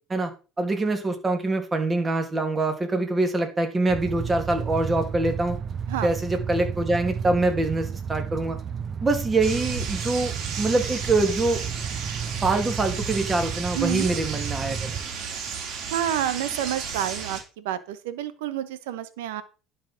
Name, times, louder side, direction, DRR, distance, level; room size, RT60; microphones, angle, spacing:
voice 1, 0.6-5.6 6.0-8.6 9.0-11.6 12.4-14.9, right 2 dB, 20° right, 5 dB, 2.7 m, -24 dB
sound 1, 3.9-15.0, right 7 dB, 40° right, 0.7 m, -32 dB
sound 2, 9.4-17.4, right 6 dB, 60° right, 3.4 m, -33 dB
voice 2, 13.7-14.1 15.9-19.4, right 11 dB, 90° right, 13 dB, 1.2 m, -29 dB
11.0 x 4.9 x 5.9 m, 0.33 s
supercardioid pair, 100°, 0 cm